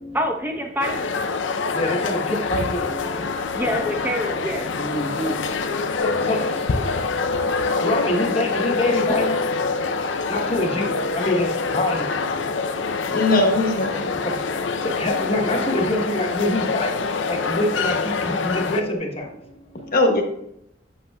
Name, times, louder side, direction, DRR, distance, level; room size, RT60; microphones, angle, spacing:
voice 1, 0.1-1.0 1.4-1.5 3.5-4.7, equal, 10° right, 3 dB, 0.9 m, -26 dB
sound 1, 0.8-18.8, left 4 dB, 90° left, 0.6 m, -26 dB
voice 2, 4.9-5.3 6.3-6.4 7.8-8.5 8.8-9.3 10.3-10.9 11.2-11.4 11.8-11.9 15.0-16.9 17.5-17.9 18.7-18.8, left 1 dB, 35° left, 2 dB, 1.1 m, -23 dB
sound 2, 6.0-19.0, left 2 dB, 65° left, 1.4 m, -32 dB
voice 3, 13.1-14.0 19.9-20.2, left 2 dB, 50° left, 2 dB, 1.3 m, -19 dB
8.0 x 7.6 x 2.3 m, 0.78 s
head